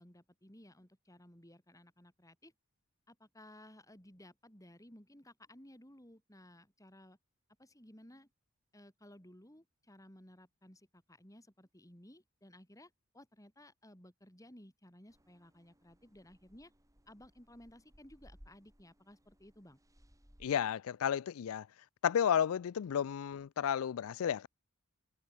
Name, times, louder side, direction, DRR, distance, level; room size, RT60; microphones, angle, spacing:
voice 1, 0.0-2.5 3.1-7.2 7.6-8.3 8.7-16.7 17.1-19.8, left 1 dB, 15° left, 5.8 m, -58 dB
sound 1, 15.1-20.5, equal, 15° right, 5.5 m, -64 dB
voice 2, 20.4-21.7 22.0-24.5, left 8 dB, 70° left, 0.4 m, -32 dB
head